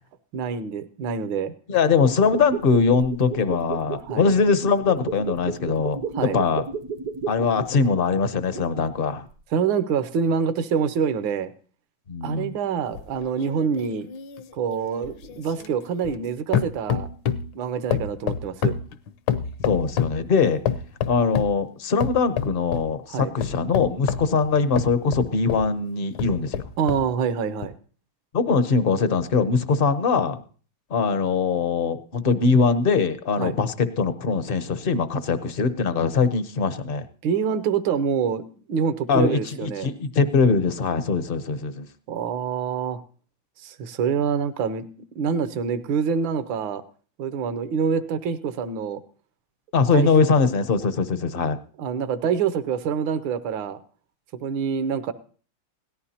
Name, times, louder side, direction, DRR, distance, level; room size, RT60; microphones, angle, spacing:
voice 1, 0.3-1.5 4.1-4.3 6.1-6.4 9.5-11.5 12.2-14.1 14.5-17.1 17.5-18.8 23.1-23.3 26.8-27.7 33.4-33.5 37.2-38.4 38.7-39.9 42.1-43.0 43.6-46.8 47.2-49.0 49.9-50.1 51.8-53.8 54.4-55.1, right 6 dB, 80° right, 12 dB, 1.6 m, -26 dB
voice 2, 1.7-6.6 7.3-9.3 12.1-12.6 19.6-20.6 21.1-26.6 28.3-30.4 30.9-37.1 39.1-41.9 49.7-51.6, left 5 dB, 60° left, 10 dB, 0.5 m, -22 dB
sound 1, 2.1-9.0 9.3-9.4, right 6 dB, 60° right, 1.0 m, -33 dB
sound 2, 12.9-16.3 16.5-17.5 17.9-20.2 20.7-21.6 22.0-22.9 23.4-25.7 26.2-27.1 27.6-27.7, left 8 dB, 80° left, 1.5 m, -28 dB
17.5 x 14.0 x 2.8 m, 0.40 s
omnidirectional pair, 2.1 m